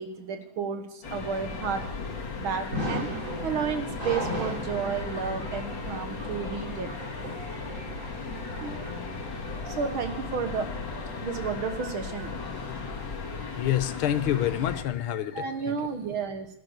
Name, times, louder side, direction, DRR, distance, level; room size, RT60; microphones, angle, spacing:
voice 1, 0.0-1.9 2.4-3.1 3.4-7.0 8.6-8.8 9.7-10.9 11.2-12.3 12.8-12.9 15.3-16.5, right 6 dB, 75° right, 7 dB, 2.2 m, -32 dB
sound 1, 1.0-14.8, left 4 dB, 55° left, 2.9 m, -36 dB
sound 2, 1.3-11.8, equal, 35° right, 3.5 m, -38 dB
voice 2, 13.2-15.8, left 11 dB, 80° left, 11 dB, 1.7 m, -28 dB
12.5 x 12.5 x 6.5 m, 0.75 s
omnidirectional pair, 2.3 m